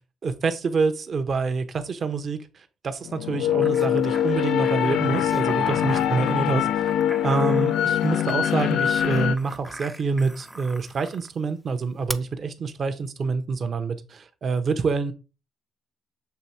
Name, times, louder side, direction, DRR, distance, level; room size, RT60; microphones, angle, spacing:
voice 1, 0.2-2.4 2.8-15.1, right 4 dB, 50° right, 1.0 m, -27 dB
sound 1, 3.0-9.4, left 10 dB, 80° left, 0.5 m, -23 dB
sound 2, 3.6-11.3 12.1-12.2, right 1 dB, 10° right, 0.5 m, -40 dB
6.9 x 3.1 x 4.4 m
cardioid pair, 90°, 0 cm